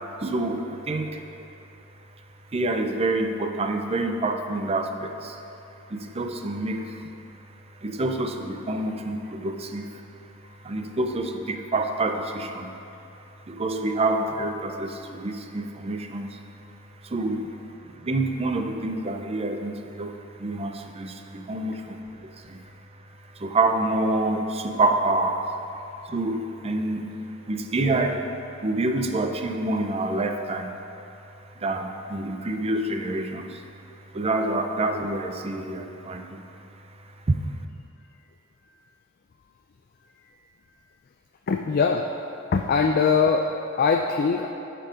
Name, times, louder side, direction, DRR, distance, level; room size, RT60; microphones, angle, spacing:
voice 1, 0.2-1.2 2.5-5.4 5.9-7.1 7.8-10.0 10.6-12.8 13.5-16.4 17.0-17.5 17.9-22.6 23.4-25.5 26.1-27.2 27.5-28.3 28.6-30.8 31.6-33.6 34.1-36.4 37.3-37.4, right 2 dB, 30° right, 5 dB, 0.5 m, -27 dB
voice 2, 41.5-42.1 42.5-44.5, left 5 dB, 45° left, 3 dB, 0.4 m, -22 dB
10.5 x 4.6 x 5.0 m, 2.8 s
head